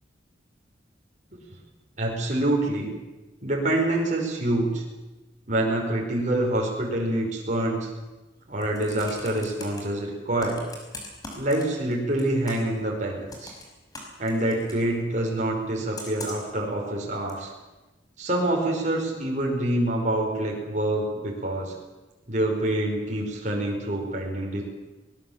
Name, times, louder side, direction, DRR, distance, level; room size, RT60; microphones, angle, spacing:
voice 1, 2.0-2.9 3.4-4.8 5.5-7.9 8.5-10.6 11.4-13.5 14.2-17.5 18.2-21.7 22.3-24.6, right 1 dB, 45° right, -1 dB, 5.3 m, -26 dB
Computer keyboard, 8.4-9.8 10.4-11.9 12.2-12.8 13.3-14.8 15.9-16.5 17.3-17.4, left 2 dB, 20° left, 5.7 m, -41 dB
23.5 x 20.5 x 7.4 m, 1.1 s
head